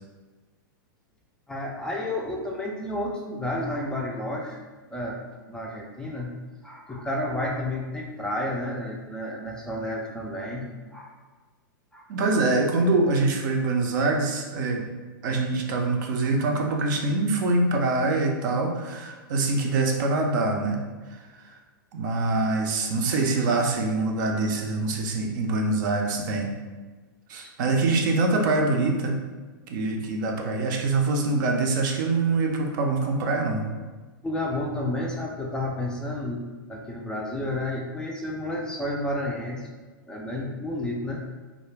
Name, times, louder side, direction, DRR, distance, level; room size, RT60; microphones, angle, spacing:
voice 1, 1.5-4.6 4.9-6.3 6.6-10.7 10.9-11.1 11.9-12.0 34.2-39.6 40.1-41.2, left 1 dB, 5° left, -2 dB, 0.3 m, -31 dB
voice 2, 12.1-14.8 15.2-20.8 21.9-26.5 27.3-29.2 29.7-33.7, right 3 dB, 60° right, 2 dB, 0.5 m, -24 dB
2.4 x 2.1 x 3.2 m, 1.3 s
hypercardioid pair, 120°, 12 cm